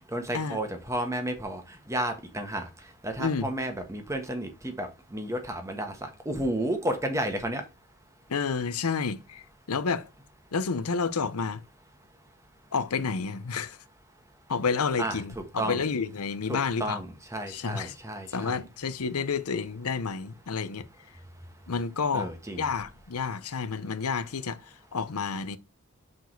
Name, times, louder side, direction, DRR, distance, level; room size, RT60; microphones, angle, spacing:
voice 1, 0.1-2.7 3.0-6.0 6.2-7.6 15.0-15.8 16.5-18.6 22.1-22.7, right 1 dB, 15° right, 1.2 m, -32 dB
voice 2, 8.3-10.1 10.5-11.6 12.7-13.8 14.5-17.0 17.5-17.9 18.3-20.8 21.7-22.3 22.6-24.6 24.9-25.6, left 5 dB, 80° left, 0.7 m, -30 dB
6.2 x 4.7 x 4.6 m
head